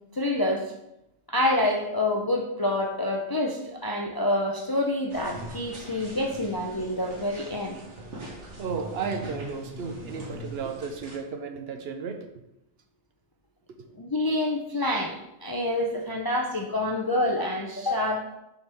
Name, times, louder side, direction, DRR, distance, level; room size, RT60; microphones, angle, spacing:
voice 1, 0.1-0.6 1.3-7.8 14.0-18.2, left 1 dB, 35° left, 0 dB, 0.3 m, -27 dB
sound 1, 5.1-11.2, right 1 dB, 80° right, 1.7 m, -41 dB
voice 2, 8.6-12.3, right 5 dB, 65° right, 6 dB, 0.8 m, -33 dB
5.9 x 5.7 x 3.4 m, 0.87 s
omnidirectional pair, 1.2 m